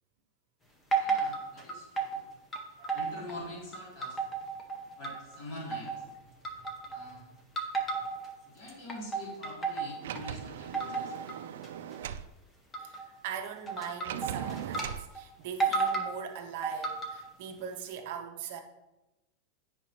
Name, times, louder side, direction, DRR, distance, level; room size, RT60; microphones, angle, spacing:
sound 1, 0.9-2.2 2.5-3.4 3.7-5.4 5.7-6.1 6.4-7.1 7.6-8.3 8.7-10.3 10.7-11.3 11.6-11.9 12.7-13.1 13.7-14.9 15.1-15.2 15.6-16.1 16.6-17.3, right 4 dB, 10° left, 0.7 m, -32 dB
voice 1, 1.0-2.2 2.9-4.2 5.0-6.0 6.9-7.4 8.5-11.3, left 1 dB, 40° left, 2.5 m, -45 dB
Sliding door, 10.0-12.3 14.0-15.1, right 10 dB, 75° right, 0.3 m, -39 dB
voice 2, 12.8-18.6, right 7 dB, 45° right, 0.8 m, -41 dB
9.3 x 5.1 x 2.9 m
supercardioid pair, 180°, 0 cm